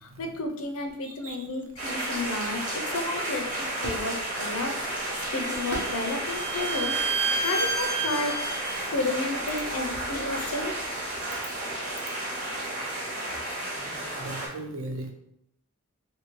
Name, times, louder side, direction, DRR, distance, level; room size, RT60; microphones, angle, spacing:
voice 1, 0.0-3.4 3.8-8.3 8.9-10.8, left 2 dB, 75° left, 4 dB, 0.5 m, -32 dB
voice 2, 1.0-1.4 3.1-3.2 8.2-8.4 8.7-8.9 13.9-15.1, right 1 dB, 65° right, 3 dB, 0.6 m, -38 dB
sound 1, 1.7-8.0, right 1 dB, 85° right, 0.9 m, -44 dB
sound 2, 1.8-14.5, right 1 dB, 35° right, 1.1 m, -32 dB
Bowed string instrument, 5.0-8.8, right 3 dB, 15° right, 0.4 m, -31 dB
2.7 x 2.6 x 3.0 m, 0.79 s
head